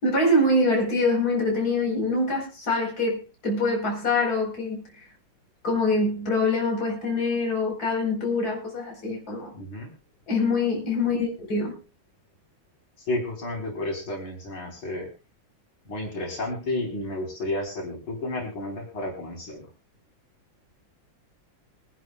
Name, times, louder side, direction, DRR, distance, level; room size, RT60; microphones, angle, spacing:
voice 1, 0.0-4.8 5.6-9.5 10.3-11.8, left 2 dB, 50° left, 5.0 m, -24 dB
voice 2, 9.5-9.9 13.1-15.1 15.9-19.6, left 2 dB, 85° left, 5.4 m, -31 dB
25.0 x 11.0 x 2.3 m
omnidirectional pair, 2.2 m